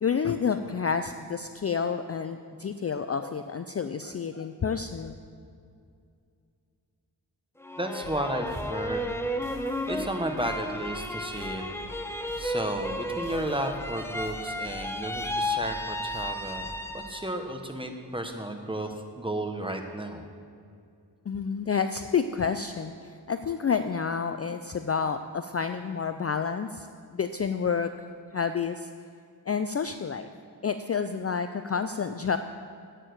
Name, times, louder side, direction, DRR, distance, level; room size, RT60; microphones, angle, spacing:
voice 1, 0.0-5.2 21.3-27.9 28.3-28.9 29.5-30.3 30.6-32.4, left 6 dB, 35° left, 9 dB, 0.4 m, -29 dB
sound 1, 7.6-17.4 17.8-18.5, left 1 dB, 5° left, 0.7 m, -34 dB
voice 2, 7.8-9.2 9.9-11.6 12.4-20.2, right 1 dB, 10° right, 4 dB, 1.1 m, -33 dB
sound 2, 8.0-16.8, equal, 85° right, 1.9 m, -46 dB
9.0 x 6.7 x 7.8 m, 2.4 s
wide cardioid pair, 60°, 42 cm